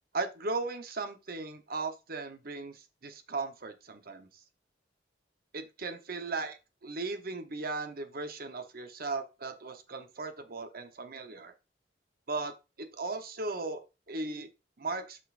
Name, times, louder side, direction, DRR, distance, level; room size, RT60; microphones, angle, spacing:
voice 1, 0.1-4.3 5.5-11.5 12.3-13.8 14.1-14.5 14.8-15.2, right 3 dB, 55° right, 8 dB, 1.1 m, -37 dB
8.1 x 5.7 x 2.6 m, 0.27 s
head